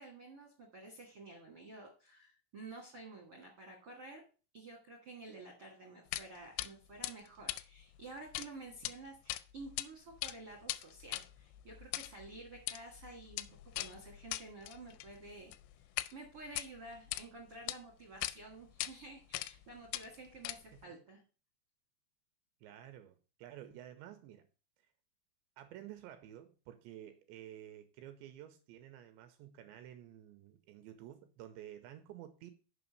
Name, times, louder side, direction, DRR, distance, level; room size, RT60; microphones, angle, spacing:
voice 1, 0.0-4.2 4.5-13.5 13.7-15.5 16.1-21.2, right 2 dB, 65° right, 1.4 m, -51 dB
sound 1, 6.1-6.3 6.6-6.7 7.0-8.5 8.7-8.9 9.3-9.9 10.1-16.1 16.5-17.2 17.7-17.8 18.2-18.4 18.8-18.9 19.3-19.6 19.9-20.8, left 17 dB, 85° left, 2.9 m, -40 dB
voice 2, 22.6-24.5 25.6-32.5, right 12 dB, 85° right, 2.8 m, -52 dB
7.0 x 5.5 x 6.6 m
omnidirectional pair, 5.5 m